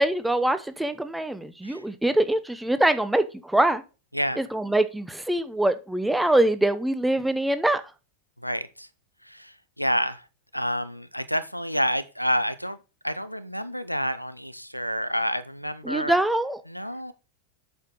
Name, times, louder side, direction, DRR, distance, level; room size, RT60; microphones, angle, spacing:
voice 1, 0.0-3.8 4.4-7.8 15.8-16.6, right 1 dB, 5° right, 0.8 m, -24 dB
voice 2, 4.1-4.5 8.4-8.9 9.2-10.2 10.5-12.8 13.0-16.2 16.7-17.1, equal, 90° left, 0.7 m, -29 dB
8.2 x 6.7 x 3.9 m
figure-of-eight pair, 90°, 0 cm